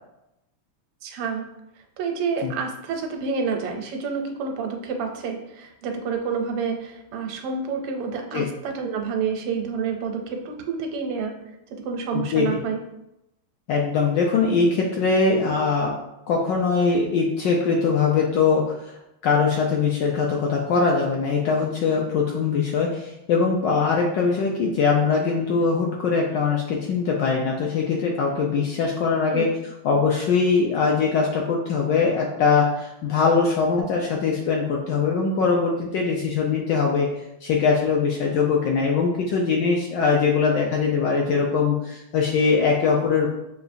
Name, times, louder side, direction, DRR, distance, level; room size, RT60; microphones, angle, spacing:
voice 1, 1.0-1.5 2.0-11.4 11.7-12.8 29.3-29.5, right 5 dB, 85° right, 3 dB, 1.6 m, -28 dB
voice 2, 12.1-12.5 13.7-15.9 16.3-19.0 19.2-29.5 29.8-37.1 37.4-43.3, left 5 dB, 75° left, -1 dB, 1.0 m, -22 dB
6.6 x 2.4 x 2.6 m, 0.87 s
omnidirectional pair, 2.4 m